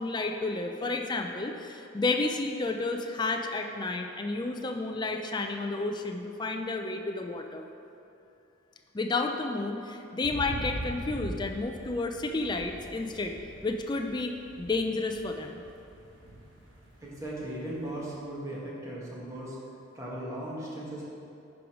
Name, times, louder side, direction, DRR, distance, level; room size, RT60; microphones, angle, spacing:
voice 1, 0.0-7.6 8.9-13.4 13.6-15.6, left 3 dB, 20° left, 4 dB, 0.4 m, -31 dB
sound 1, 10.2-18.1, right 1 dB, 60° right, 1.1 m, -42 dB
voice 2, 17.0-19.6 19.9-21.0, right 1 dB, 15° right, -6 dB, 1.5 m, -37 dB
10.0 x 4.7 x 4.9 m, 2.8 s
head